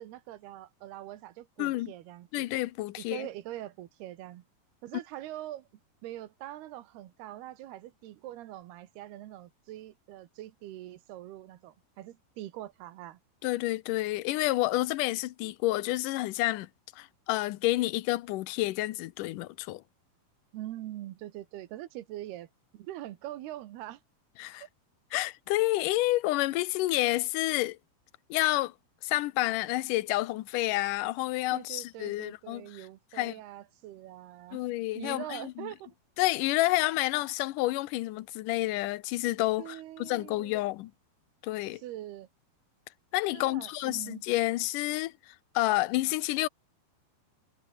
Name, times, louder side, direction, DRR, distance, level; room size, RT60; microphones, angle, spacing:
voice 1, 0.0-2.5 3.0-4.5 4.8-5.7 6.0-13.2 20.5-22.5 22.7-24.0 24.6-24.7 31.5-34.6 34.9-35.9 39.6-40.6 41.7-42.3 43.3-44.2, right 14 dB, 85° right, 3.3 m, -43 dB
voice 2, 1.6-1.9 2.3-3.3 13.4-16.7 17.0-19.8 24.4-24.6 25.1-27.8 28.3-28.7 29.0-32.6 33.2-33.3 34.5-35.7 36.2-40.9 41.4-41.8 43.1-46.5, left 18 dB, 75° left, 2.1 m, -29 dB
omnidirectional pair, 4.5 m